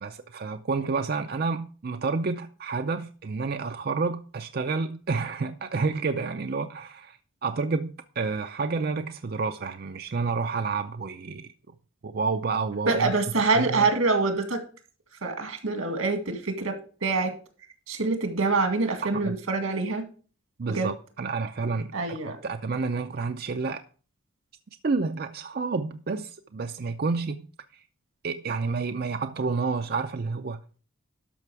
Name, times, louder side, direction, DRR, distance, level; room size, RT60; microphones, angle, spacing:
voice 1, 0.0-11.5 12.0-13.1 13.4-13.9 19.2-19.3 20.6-23.8 24.8-27.5 27.7-27.8 28.2-30.6, right 4 dB, 45° right, 0.5 m, -29 dB
voice 2, 12.9-14.6 15.2-16.8 17.0-17.3 17.9-20.0 20.7-20.9 21.9-22.4, right 3 dB, 90° right, 2.0 m, -25 dB
12.0 x 5.9 x 4.7 m
head